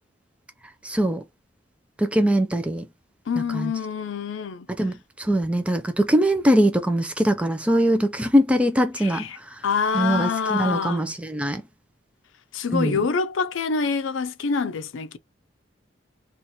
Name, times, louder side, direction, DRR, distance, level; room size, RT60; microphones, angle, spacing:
voice 1, 0.8-1.2 2.0-2.9 3.5-3.7 4.8-4.9 5.2-9.3 9.9-11.6 12.7-13.0, equal, 5° right, 0.4 m, -21 dB
voice 2, 3.3-4.7 9.0-11.0 12.5-15.2, left 5 dB, 90° left, 0.5 m, -26 dB
2.8 x 2.5 x 4.2 m
head